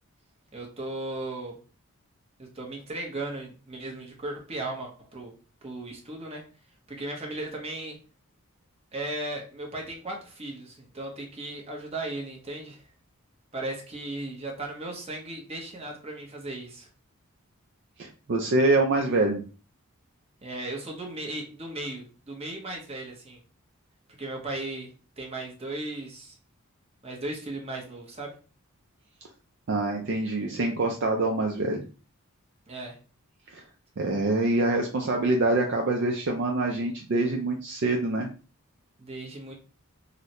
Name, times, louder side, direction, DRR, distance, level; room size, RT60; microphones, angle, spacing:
voice 1, 0.5-1.6 2.4-5.3 5.6-6.4 6.9-8.0 8.9-12.9 13.5-16.9 20.4-23.4 24.2-24.9 25.2-26.4 27.0-28.4 32.7-33.0 39.0-39.5, right 2 dB, 25° right, 0 dB, 0.8 m, -36 dB
voice 2, 18.0-19.4 29.7-31.8 33.5-33.6 34.0-38.3, right 2 dB, 50° right, 1 dB, 0.4 m, -25 dB
3.8 x 2.1 x 2.8 m, 0.36 s
head